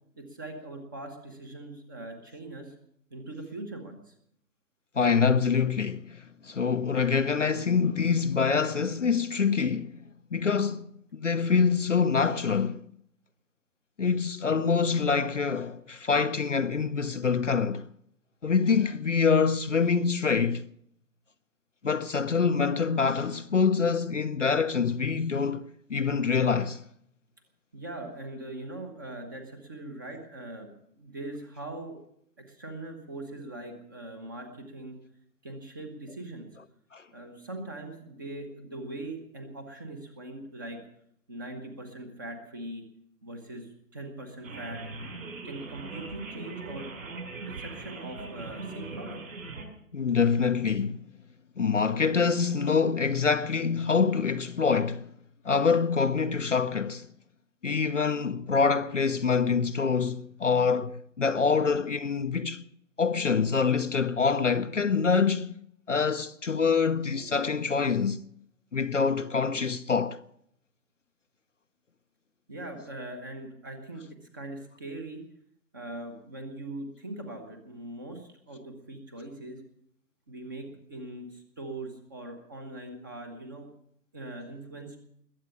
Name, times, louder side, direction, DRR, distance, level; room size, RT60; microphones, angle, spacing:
voice 1, 0.2-2.7 3.1-4.1 27.7-32.0 32.5-34.9 35.4-36.5 37.1-40.8 41.3-42.8 43.2-44.8 45.4-46.9 47.4-49.2 72.5-74.0 74.3-75.2 75.7-79.6 80.3-83.7 84.1-85.0, right 2 dB, 15° right, 1.0 m, -41 dB
voice 2, 5.0-10.0 10.3-10.9 11.1-12.8 14.0-17.9 18.4-20.7 21.8-26.8 36.9-37.0 49.9-51.0 51.6-55.1 55.4-57.1 57.6-62.6 63.0-65.6 65.9-68.2 68.7-70.2, left 5 dB, 50° left, 0.7 m, -25 dB
sound 1, 44.4-49.7, right 3 dB, 55° right, 5.5 m, -40 dB
21.0 x 8.2 x 8.5 m
figure-of-eight pair, 155°, 49 cm